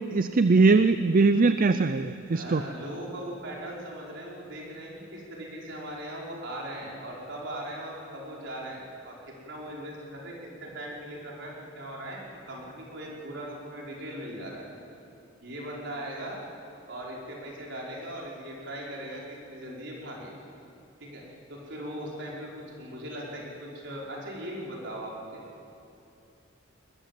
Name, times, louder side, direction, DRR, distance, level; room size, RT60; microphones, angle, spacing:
voice 1, 0.0-2.6, right 3 dB, 45° right, 11 dB, 0.5 m, -21 dB
voice 2, 2.3-12.2 12.5-14.6 15.4-16.4 16.9-20.3 21.0-21.2 21.5-25.4, right 1 dB, 65° right, -3 dB, 5.2 m, -39 dB
21.0 x 21.0 x 7.6 m, 2.7 s
head